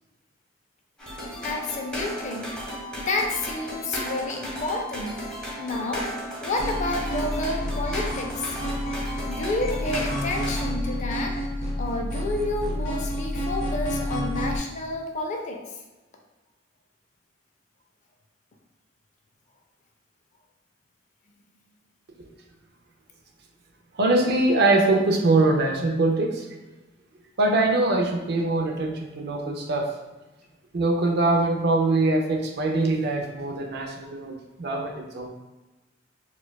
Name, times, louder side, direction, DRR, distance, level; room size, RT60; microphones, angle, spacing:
sound 1, 1.0-10.6, equal, 5° left, 0.9 m, -35 dB
voice 1, 1.4-2.5 3.0-5.2 5.6-6.1 6.4-8.6 9.3-11.4 11.8-15.6, left 2 dB, 40° left, 2 dB, 0.4 m, -30 dB
sound 2, 6.6-14.6, equal, 85° left, 1.0 m, -29 dB
voice 2, 23.9-26.5 27.4-29.9 30.7-35.3, right 2 dB, 55° right, 2 dB, 0.5 m, -23 dB
4.4 x 2.3 x 2.2 m, 1.1 s
head